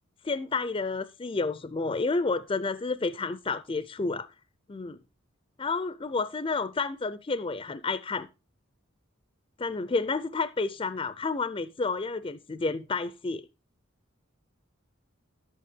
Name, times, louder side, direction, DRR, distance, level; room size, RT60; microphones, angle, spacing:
voice 1, 0.2-4.3 4.7-5.0 5.6-8.3 9.6-13.5, left 3 dB, 25° left, 0.4 m, -30 dB
11.0 x 8.5 x 3.6 m
head